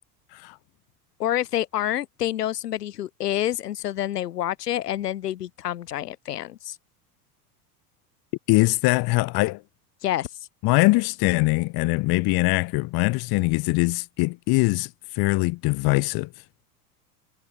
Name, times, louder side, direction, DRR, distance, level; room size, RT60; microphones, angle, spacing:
voice 1, 1.2-6.8 10.0-10.3, left 12 dB, 80° left, 3.8 m, -28 dB
voice 2, 8.5-9.6 10.6-16.3, left 23 dB, 50° left, 1.6 m, -22 dB
hypercardioid pair, 80°, 47 cm